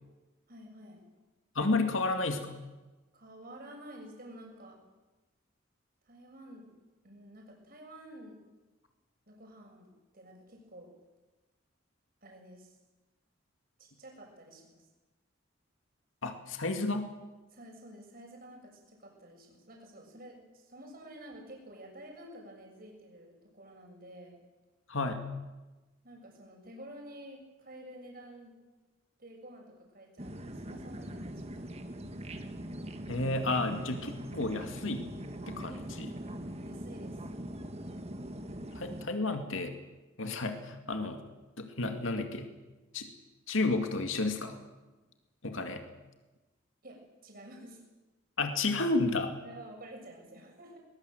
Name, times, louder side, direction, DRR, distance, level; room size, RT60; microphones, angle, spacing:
voice 1, 0.5-1.0 3.1-4.8 6.0-6.6 7.0-8.3 9.3-9.9 10.1-10.9 12.2-12.8 13.8-14.8 17.5-24.4 26.0-28.5 29.2-31.7 36.6-37.2 46.8-47.8 49.4-50.8, right 1 dB, 50° right, 1 dB, 7.1 m, -50 dB
voice 2, 1.6-2.5 16.2-17.1 24.9-25.3 33.1-35.1 35.5-36.1 38.8-39.7 40.2-41.2 41.6-42.5 42.9-43.1 43.5-44.6 45.4-45.8 48.4-49.3, left 2 dB, 80° left, 6 dB, 2.3 m, -31 dB
sound 1, 30.2-39.1, right 1 dB, 30° right, 1.7 m, -42 dB
22.0 x 21.5 x 7.9 m, 1.2 s
head